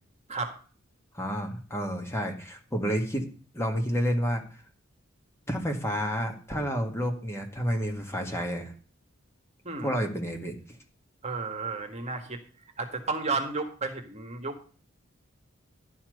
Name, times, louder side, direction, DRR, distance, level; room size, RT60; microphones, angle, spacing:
voice 1, 1.1-3.3 3.5-4.4 5.5-8.7 9.8-10.5, equal, 15° left, 3 dB, 1.8 m, -30 dB
voice 2, 9.6-10.0 11.2-12.4 12.8-14.6, right 3 dB, 35° right, 5 dB, 1.7 m, -32 dB
11.5 x 5.8 x 6.5 m, 0.39 s
head